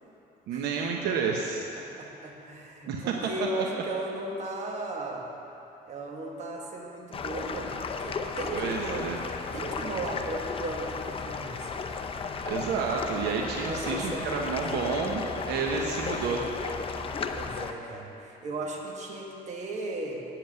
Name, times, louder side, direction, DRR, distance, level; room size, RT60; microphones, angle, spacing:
voice 1, 0.5-1.7 2.9-3.2 8.5-9.2 12.4-16.4, right 5 dB, 80° right, 1 dB, 1.0 m, -30 dB
voice 2, 1.8-5.3 5.9-9.1 9.5-11.8 13.7-14.6 17.3-20.2, right 2 dB, 45° right, 0 dB, 1.7 m, -36 dB
sound 1, 7.1-17.7, left 5 dB, 35° left, 0.7 m, -34 dB
9.2 x 7.7 x 8.0 m, 2.9 s
cardioid pair, 110°, 17 cm